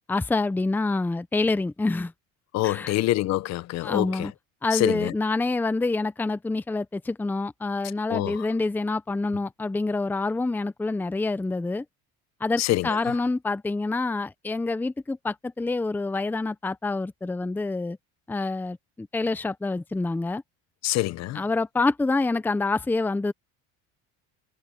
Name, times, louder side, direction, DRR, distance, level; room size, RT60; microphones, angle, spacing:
voice 1, 0.1-2.1 2.6-2.9 3.8-4.3 4.6-11.8 12.4-18.0 18.3-20.4 21.3-23.3, left 3 dB, 5° left, 0.6 m, -27 dB
voice 2, 2.5-4.3 4.7-5.1 8.1-8.5 12.6-13.1 20.8-21.4, left 16 dB, 60° left, 1.0 m, -26 dB
cardioid pair, 125°, 30 cm